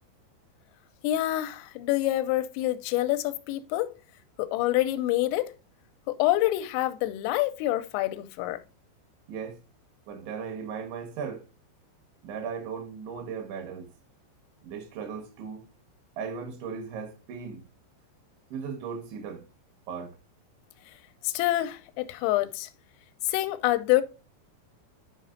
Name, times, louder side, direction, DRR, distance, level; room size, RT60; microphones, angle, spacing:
voice 1, 1.0-3.9 4.4-5.6 6.1-8.6 21.2-22.7 23.3-24.0, left 15 dB, 85° left, 3.2 m, -26 dB
voice 2, 9.3-9.6 10.1-11.4 12.2-13.9 14.6-15.6 16.2-17.6 18.5-19.4 19.9-20.2, right 6 dB, 70° right, 3.4 m, -37 dB
10.5 x 5.0 x 2.6 m
omnidirectional pair, 5.8 m